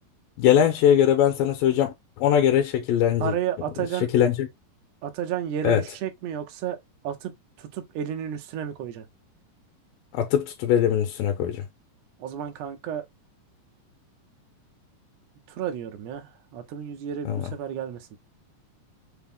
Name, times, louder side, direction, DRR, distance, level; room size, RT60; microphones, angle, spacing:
voice 1, 0.4-3.3 4.1-4.5 5.6-5.8 10.1-11.6 17.3-17.5, left 10 dB, 85° left, 2.4 m, -21 dB
voice 2, 3.2-4.1 5.0-6.8 7.0-7.3 7.6-9.1 12.2-13.0 15.5-18.2, right 9 dB, 80° right, 1.5 m, -32 dB
5.7 x 2.0 x 3.5 m
omnidirectional pair, 3.9 m